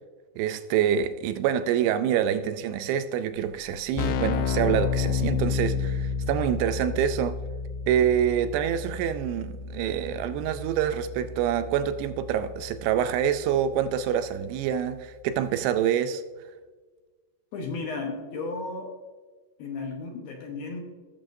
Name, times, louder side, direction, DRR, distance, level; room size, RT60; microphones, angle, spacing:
voice 1, 0.4-7.4 7.9-16.2, right 9 dB, 85° right, 2.6 m, -26 dB
Keyboard (musical), 3.4-3.5 3.7-14.3, left 6 dB, 85° left, 2.7 m, -31 dB
voice 2, 17.5-19.0 19.6-20.8, left 3 dB, 70° left, 2.5 m, -34 dB
17.0 x 7.1 x 2.6 m
omnidirectional pair, 4.9 m